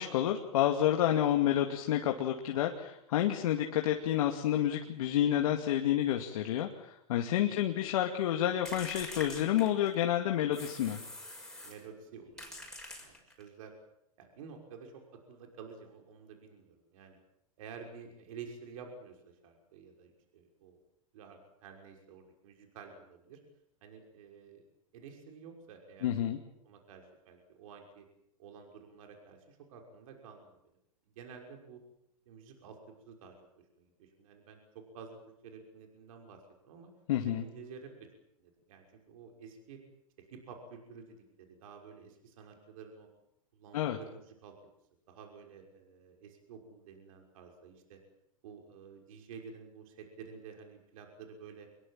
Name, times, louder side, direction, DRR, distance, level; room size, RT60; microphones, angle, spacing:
voice 1, 0.0-11.0 26.0-26.4 37.1-37.4 43.7-44.0, left 11 dB, 70° left, 3 dB, 2.4 m, -29 dB
sound 1, 8.7-10.1 10.5-11.9 12.4-13.5, left 1 dB, 5° left, 6.3 m, -45 dB
voice 2, 11.6-13.7 14.2-17.2 17.6-20.8 21.1-23.4 23.8-24.6 24.9-26.1 26.6-28.0 28.4-30.6 31.2-31.8 32.3-33.3 33.8-35.2 35.4-36.4 36.6-36.9 37.2-38.1 38.4-39.8 40.3-43.1 43.5-44.5 45.1-48.0 48.4-51.7, right 6 dB, 65° right, 3 dB, 5.9 m, -51 dB
25.5 x 22.0 x 7.6 m, 0.78 s
hypercardioid pair, 120°, 19 cm